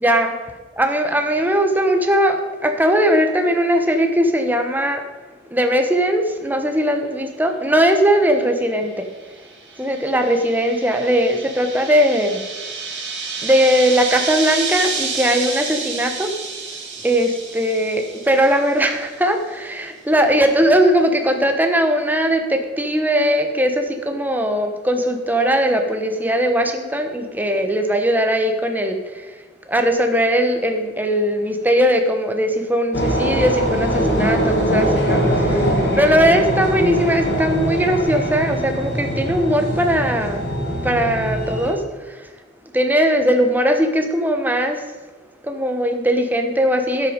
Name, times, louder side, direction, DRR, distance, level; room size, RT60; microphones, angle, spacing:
voice 1, 0.0-0.3 0.8-5.0 5.5-9.0 9.8-12.4 13.4-16.3 17.0-29.3 29.7-35.6 35.9-40.4 40.8-42.3 42.7-44.8 45.4-47.1, equal, 10° right, 5 dB, 1.1 m, -19 dB
sound 1, 9.2-19.0, right 5 dB, 70° right, 2.5 m, -29 dB
sound 2, 32.9-41.7, equal, 65° left, 2.3 m, -21 dB
12.5 x 8.0 x 5.1 m, 1.3 s
head